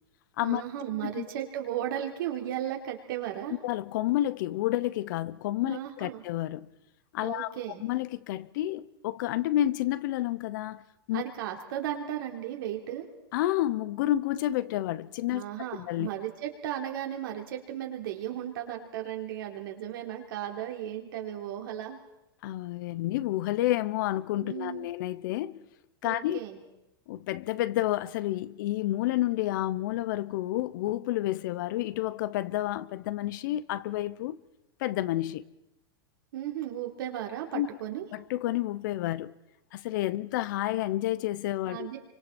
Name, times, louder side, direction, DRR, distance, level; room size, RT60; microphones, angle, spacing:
voice 1, 0.4-3.6 5.6-6.2 7.2-7.8 11.1-13.1 15.3-22.0 24.4-24.9 26.0-26.6 36.3-38.1 41.6-42.0, right 11 dB, 65° right, 3.8 m, -35 dB
voice 2, 3.6-6.7 7.1-10.8 11.1-11.2 13.3-15.4 15.8-16.1 22.4-25.6 26.0-26.4 27.1-34.4 34.8-35.4 37.5-37.7 38.1-39.3 39.7-41.9, left 14 dB, 55° left, 0.9 m, -30 dB
28.5 x 25.0 x 4.4 m
hypercardioid pair, 140°, 12 cm